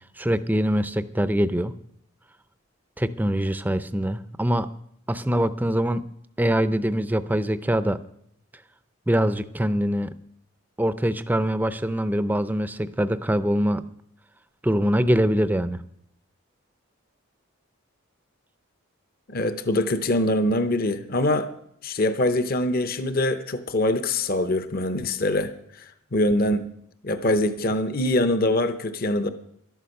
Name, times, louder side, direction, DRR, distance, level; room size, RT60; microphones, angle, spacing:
voice 1, 0.2-1.7 3.0-4.7 5.1-6.0 6.4-8.0 9.1-10.1 10.8-13.8 14.6-15.8, equal, 10° right, 13 dB, 0.5 m, -23 dB
voice 2, 19.3-21.5 21.8-26.7 27.0-29.3, left 1 dB, 45° left, 10 dB, 0.8 m, -24 dB
13.0 x 12.0 x 6.5 m, 0.73 s
head